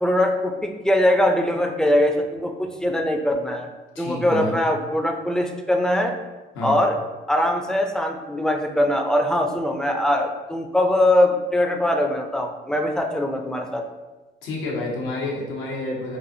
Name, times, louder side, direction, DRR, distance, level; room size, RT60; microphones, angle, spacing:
voice 1, 0.0-3.7 4.0-6.1 6.6-7.0 7.3-13.8, left 1 dB, 5° left, 3 dB, 0.4 m, -22 dB
voice 2, 3.9-4.6 6.5-6.7 14.4-16.2, left 2 dB, 90° left, -4 dB, 1.0 m, -29 dB
4.0 x 2.5 x 2.6 m, 1.2 s
cardioid pair, 90°, 20 cm